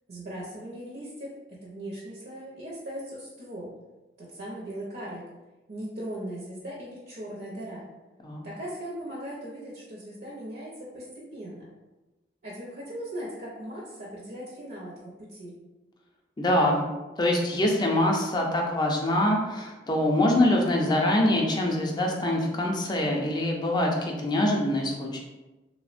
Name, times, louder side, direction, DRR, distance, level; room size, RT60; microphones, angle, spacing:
voice 1, 0.1-3.7 4.2-5.3 5.7-7.9 8.4-11.6 12.4-15.6, right 1 dB, 55° right, -5 dB, 0.5 m, -39 dB
voice 2, 16.4-16.8 17.2-25.2, left 1 dB, 25° left, 0 dB, 0.4 m, -24 dB
3.2 x 2.0 x 2.5 m, 1.1 s
head